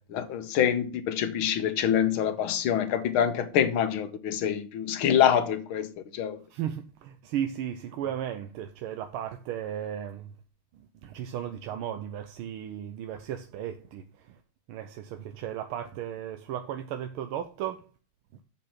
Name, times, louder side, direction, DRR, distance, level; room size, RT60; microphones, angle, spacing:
voice 1, 0.1-5.9 6.1-6.4, left 9 dB, 80° left, 1.8 m, -25 dB
voice 2, 6.5-10.3 10.7-14.4 14.7-17.9, right 10 dB, 85° right, 1.6 m, -35 dB
7.5 x 5.5 x 5.8 m
omnidirectional pair, 2.3 m